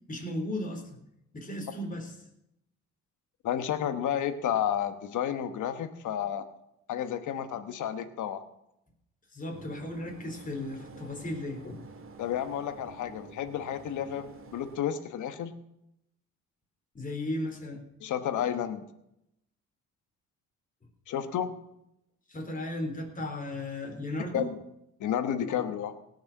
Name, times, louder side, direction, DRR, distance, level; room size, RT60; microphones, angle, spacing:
voice 1, 0.1-1.0 1.3-2.1 9.3-11.9 16.9-17.8 22.3-24.5, left 1 dB, 25° left, 2 dB, 4.0 m, -35 dB
voice 2, 3.4-6.5 6.9-8.4 12.2-15.5 18.0-18.9 21.1-21.5 24.3-24.6 25.0-25.9, left 9 dB, 75° left, 10 dB, 1.3 m, -31 dB
sound 1, 9.5-14.8, right 3 dB, 45° right, 2.0 m, -49 dB
18.0 x 6.6 x 7.3 m, 0.81 s
cardioid pair, 90°, 30 cm